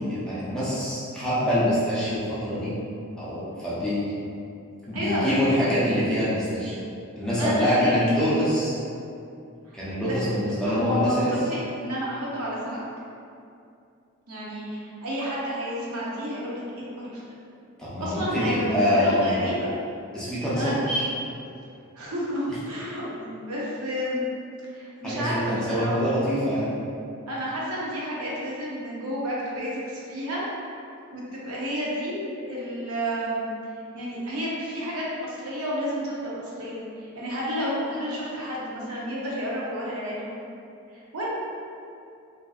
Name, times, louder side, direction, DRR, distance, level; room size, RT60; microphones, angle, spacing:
voice 1, 0.0-2.7 3.2-4.1 4.9-6.7 7.2-8.8 9.7-11.3 17.8-19.5 20.1-21.1 25.0-26.7, equal, 5° left, -10 dB, 0.5 m, -25 dB
voice 2, 4.9-5.8 7.4-7.9 10.0-10.2 10.6-12.8 14.3-17.2 18.0-19.7 20.5-21.1 22.0-24.3 24.7-26.1 27.3-30.4 31.1-33.6 33.9-36.8 37.1-40.3 41.1-41.3, equal, 85° right, -6 dB, 0.6 m, -30 dB
2.5 x 2.5 x 2.3 m, 2.5 s
head